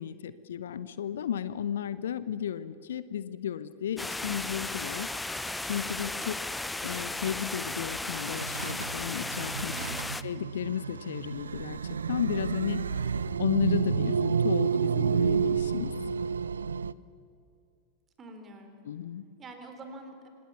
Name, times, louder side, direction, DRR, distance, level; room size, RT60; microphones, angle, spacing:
voice 1, 0.0-5.1 5.6-6.4 6.8-9.7 10.2-11.8 12.1-15.9 18.8-19.3, left 9 dB, 60° left, 15 dB, 0.8 m, -33 dB
sound 1, 4.0-10.2, left 2 dB, 5° left, 0.6 m, -35 dB
sound 2, 8.2-16.9, right 6 dB, 70° right, 0.5 m, -30 dB
voice 2, 9.7-10.3 18.2-18.8 19.4-20.3, right 2 dB, 25° right, 6 dB, 3.8 m, -46 dB
26.5 x 19.5 x 7.1 m, 2.5 s
figure-of-eight pair, 90°, 0 cm